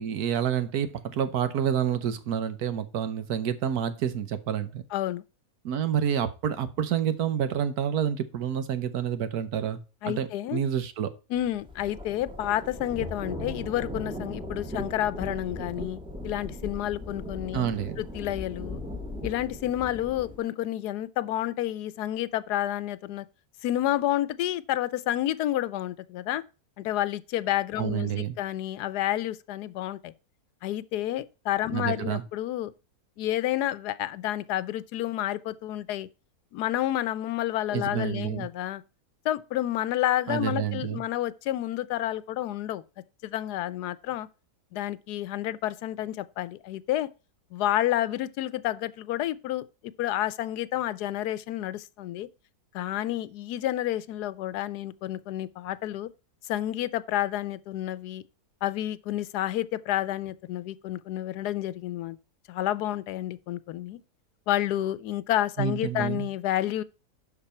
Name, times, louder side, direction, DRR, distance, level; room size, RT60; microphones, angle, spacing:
voice 1, 0.0-4.8 5.6-11.1 17.5-18.0 27.8-28.3 31.7-32.2 37.7-38.5 40.3-41.0 65.6-66.3, right 9 dB, 70° right, 1.4 m, -28 dB
voice 2, 4.9-5.2 10.0-10.6 11.3-17.7 18.0-18.8 19.2-23.3 23.6-26.4 26.8-30.1 30.6-32.7 33.2-36.1 36.5-38.8 39.2-42.8 43.2-44.3 44.7-47.1 47.5-49.6 50.0-52.3 52.7-56.1 56.5-58.2 58.6-62.2 62.5-64.0 64.5-66.8, left 13 dB, 85° left, 1.2 m, -30 dB
sound 1, 11.4-20.4, left 1 dB, 5° right, 1.5 m, -38 dB
12.0 x 4.6 x 4.3 m
omnidirectional pair, 1.7 m